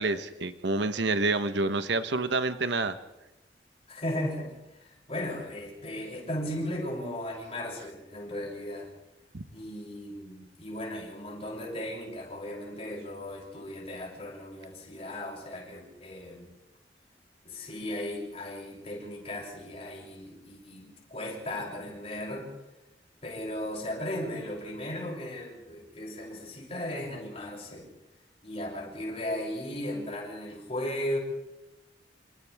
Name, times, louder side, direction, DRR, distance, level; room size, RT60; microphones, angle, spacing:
voice 1, 0.0-3.0 9.3-9.4, right 3 dB, 75° right, 10 dB, 1.1 m, -28 dB
voice 2, 3.9-8.9 9.5-16.5 17.4-22.5 23.2-27.9 28.4-31.2, left 1 dB, 35° left, -2 dB, 7.3 m, -36 dB
28.5 x 27.5 x 3.6 m, 1.0 s
head